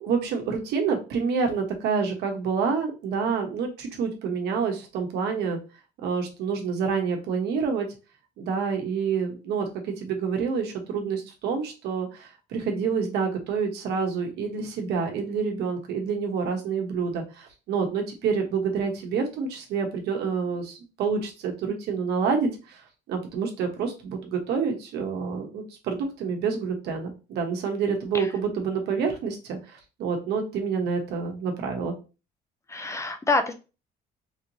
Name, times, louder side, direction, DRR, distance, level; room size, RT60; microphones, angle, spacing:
voice 1, 0.0-5.6 6.0-7.9 8.4-22.8 23.1-31.9, right 5 dB, 80° right, 3 dB, 1.0 m, -28 dB
voice 2, 32.7-33.5, left 3 dB, 15° left, 8 dB, 0.5 m, -26 dB
3.5 x 2.9 x 2.7 m, 0.31 s
cardioid pair, 110°, 17 cm